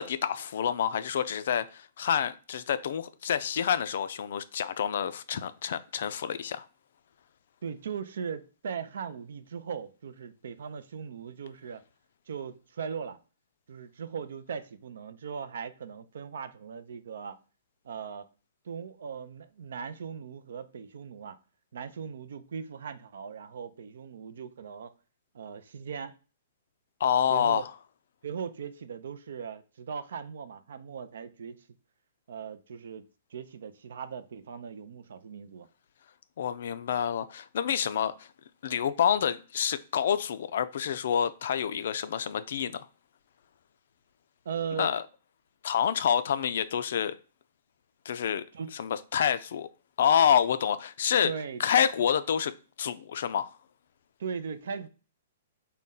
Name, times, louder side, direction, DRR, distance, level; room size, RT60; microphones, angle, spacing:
voice 1, 0.0-6.7 27.0-27.7 36.4-38.3 38.6-42.9 44.8-45.0 45.6-47.1 48.1-48.4 48.7-49.7 50.0-51.3 51.6-52.5 52.8-53.5, left 8 dB, 65° left, 0.3 m, -27 dB
voice 2, 7.6-11.8 12.3-13.2 13.7-17.4 17.8-18.3 18.6-21.4 21.7-24.9 25.3-26.2 27.3-27.6 28.2-31.6 32.3-33.0 33.3-35.7 44.5-44.9 48.5-48.8 51.2-51.6 54.2-54.9, right 6 dB, 65° right, 0.4 m, -39 dB
4.0 x 2.2 x 3.6 m
hypercardioid pair, 120°, 0 cm